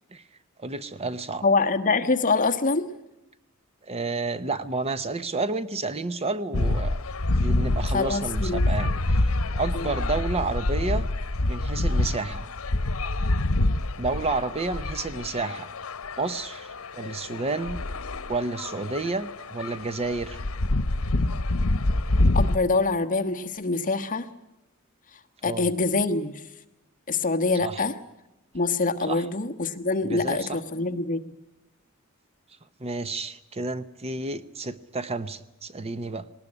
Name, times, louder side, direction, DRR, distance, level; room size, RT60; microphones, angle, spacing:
voice 1, 0.6-1.4 3.8-7.0 7.4-11.1 11.5-12.5 14.0-15.7 16.2-17.8 18.3-20.4 25.4-25.7 27.6-27.8 29.1-29.2 30.0-30.6 32.8-36.3, right 3 dB, 30° right, 13 dB, 0.8 m, -30 dB
voice 2, 1.4-2.9 7.9-8.6 9.7-9.9 22.3-24.3 25.4-26.4 27.1-27.9 28.5-31.2, left 3 dB, 40° left, 5 dB, 1.3 m, -25 dB
sound 1, 6.5-22.6, left 2 dB, 90° left, 1.0 m, -26 dB
19.5 x 19.0 x 9.8 m, 0.95 s
head